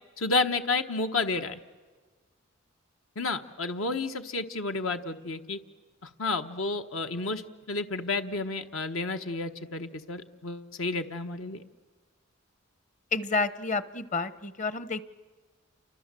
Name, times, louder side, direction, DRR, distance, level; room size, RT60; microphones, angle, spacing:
voice 1, 0.2-1.6 3.2-5.6 6.0-7.4 7.7-11.6, left 3 dB, 75° left, 7 dB, 1.2 m, -31 dB
voice 2, 13.1-15.0, left 4 dB, 35° left, 14 dB, 0.9 m, -30 dB
29.5 x 25.0 x 7.6 m, 1.4 s
head